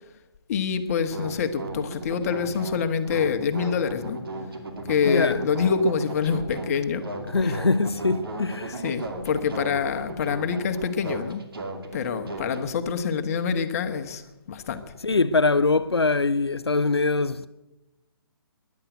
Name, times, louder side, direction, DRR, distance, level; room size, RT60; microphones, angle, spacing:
voice 1, 0.5-4.2 4.9-7.0 7.4-7.6 8.6-11.4 11.9-14.2 14.5-14.8, left 6 dB, 35° left, 1.3 m, -26 dB
sound 1, 1.1-12.6, right 2 dB, 65° right, 2.6 m, -36 dB
voice 2, 5.1-5.4 7.3-8.8 15.0-17.5, left 3 dB, 85° left, 0.6 m, -23 dB
16.0 x 11.0 x 8.0 m
figure-of-eight pair, 140°, 13 cm